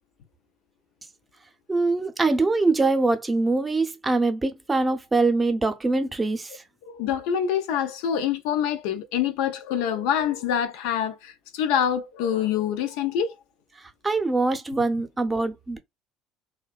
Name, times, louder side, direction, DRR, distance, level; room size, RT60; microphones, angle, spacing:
voice 1, 1.7-6.6 14.0-15.8, right 3 dB, 20° right, 0.6 m, -23 dB
voice 2, 6.9-13.4, left 9 dB, 70° left, 0.4 m, -26 dB
2.7 x 2.1 x 2.3 m
hypercardioid pair, 65°, 0 cm